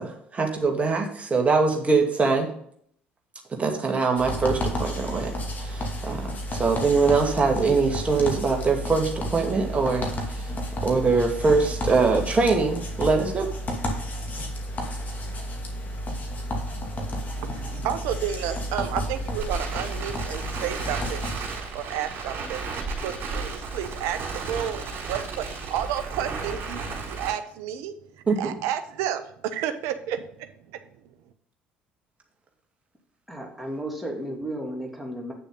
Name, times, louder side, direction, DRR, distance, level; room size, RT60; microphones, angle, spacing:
voice 1, 0.0-2.5 3.6-10.5 10.8-13.5 28.3-28.5, right 4 dB, 25° right, 2 dB, 2.2 m, -23 dB
sound 1, 4.2-21.4, equal, 35° left, 2.3 m, -31 dB
voice 2, 17.4-21.2 21.7-22.6 23.0-27.9 28.4-30.5, right 10 dB, 60° right, 10 dB, 0.9 m, -31 dB
Crackle, 18.1-27.3, right 4 dB, 45° right, 3.9 m, -34 dB
voice 3, 33.3-35.3, right 1 dB, ahead, 0 dB, 2.8 m, -33 dB
8.9 x 6.8 x 3.9 m, 0.64 s
figure-of-eight pair, 55°, 5 cm